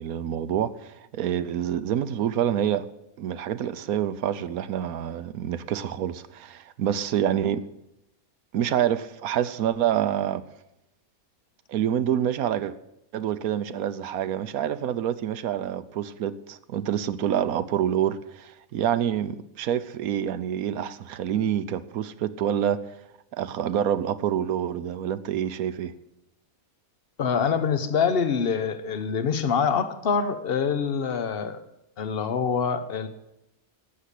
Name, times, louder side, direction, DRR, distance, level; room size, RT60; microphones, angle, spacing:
voice 1, 0.0-2.9 3.2-7.7 8.5-10.4 11.7-12.7 13.1-22.8 23.3-25.9, right 10 dB, 80° right, 14 dB, 1.2 m, -27 dB
voice 2, 27.2-31.6 32.0-33.1, left 6 dB, 45° left, 11 dB, 1.1 m, -25 dB
12.5 x 8.6 x 8.2 m, 0.86 s
omnidirectional pair, 1.5 m